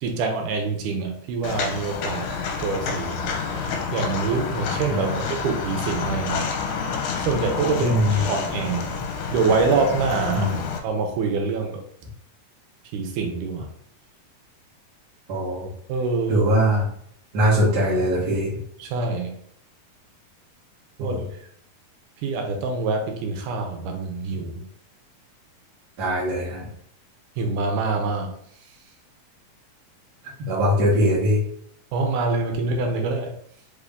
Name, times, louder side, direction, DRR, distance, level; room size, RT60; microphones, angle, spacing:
voice 1, 0.0-2.3 2.6-6.5 7.2-9.0 9.3-10.5 10.8-11.8 12.9-13.7 15.9-16.5 18.8-19.4 21.0-21.2 22.2-24.6 27.4-28.3 31.9-33.3, right 4 dB, 75° right, 3 dB, 2.1 m, -25 dB
Walk footsteps, 1.4-10.8, left 5 dB, 85° left, 2.2 m, -29 dB
voice 2, 7.8-8.2 10.3-10.6 15.3-15.7 16.3-16.9 17.3-18.5 21.0-21.2 26.0-26.7 30.5-31.4, equal, 55° right, -5 dB, 1.1 m, -21 dB
5.1 x 2.6 x 3.4 m, 0.67 s
omnidirectional pair, 3.9 m